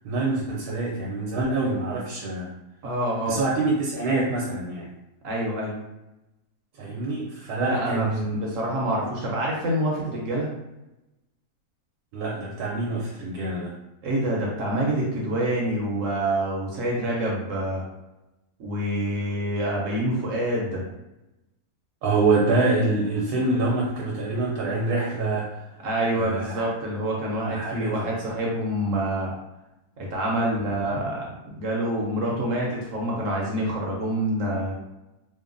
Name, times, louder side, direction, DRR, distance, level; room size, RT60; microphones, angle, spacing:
voice 1, 0.0-2.5 3.3-4.9 6.8-8.5 12.1-13.7 22.0-25.6 26.1-26.7 27.4-28.1, right 3 dB, 90° right, -3 dB, 1.1 m, -26 dB
voice 2, 2.8-3.4 5.2-5.8 7.6-8.1 8.3-10.5 14.0-17.8 18.6-20.9 25.8-29.3 30.0-34.7, right 1 dB, 65° right, -3 dB, 0.9 m, -26 dB
3.0 x 2.1 x 2.5 m, 0.95 s
omnidirectional pair, 1.6 m